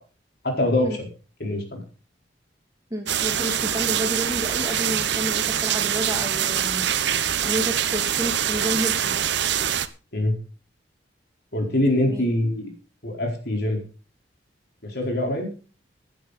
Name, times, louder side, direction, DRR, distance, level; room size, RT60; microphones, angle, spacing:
voice 1, 0.4-1.0 1.4-1.8 10.1-10.3 11.5-12.7 13.0-13.8 14.8-15.5, left 1 dB, 60° left, 1 dB, 4.3 m, -24 dB
voice 2, 2.9-9.2 12.0-12.3, equal, 20° right, 3 dB, 2.6 m, -30 dB
sound 1, 3.1-9.9, right 9 dB, 65° right, 0.9 m, -24 dB
16.5 x 10.5 x 4.2 m, 0.36 s
head